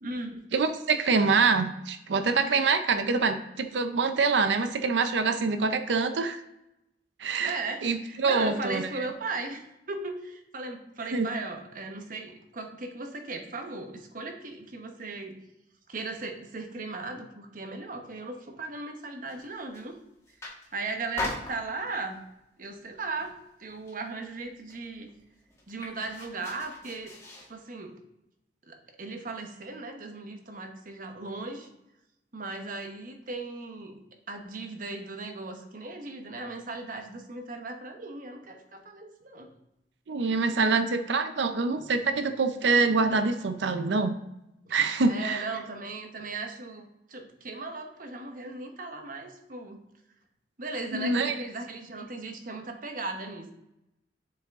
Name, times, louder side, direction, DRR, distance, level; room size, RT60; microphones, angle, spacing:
voice 1, 0.0-0.4 7.4-15.4 15.9-19.9 20.7-22.2 22.6-25.1 25.7-27.2 27.5-27.9 28.7-31.7 32.3-34.0 34.3-39.5 41.8-41.9 44.6-44.7 45.0-49.8 50.6-53.5, right 3 dB, 50° right, 5 dB, 1.0 m, -37 dB
voice 2, 0.5-6.4 7.2-8.8 11.1-11.3 40.1-44.1 44.7-45.5 50.9-51.3, right 4 dB, 85° right, 9 dB, 0.5 m, -25 dB
sound 1, 19.3-19.9 20.3-20.8 21.2-22.1 22.7-22.9 23.2-24.1 24.4-24.5 24.7-27.5, left 3 dB, 15° left, 1.5 m, -40 dB
7.1 x 4.8 x 3.6 m, 0.88 s
head